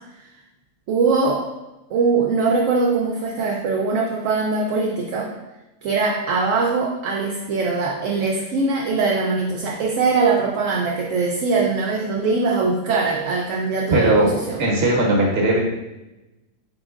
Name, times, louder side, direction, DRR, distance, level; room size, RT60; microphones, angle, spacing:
voice 1, 0.9-1.5 1.9-5.3 5.8-14.6, right 4 dB, 75° right, -2 dB, 0.9 m, -21 dB
voice 2, 13.9-15.6, right 1 dB, 50° right, -3 dB, 1.2 m, -18 dB
4.9 x 3.7 x 2.4 m, 0.99 s
omnidirectional pair, 1.4 m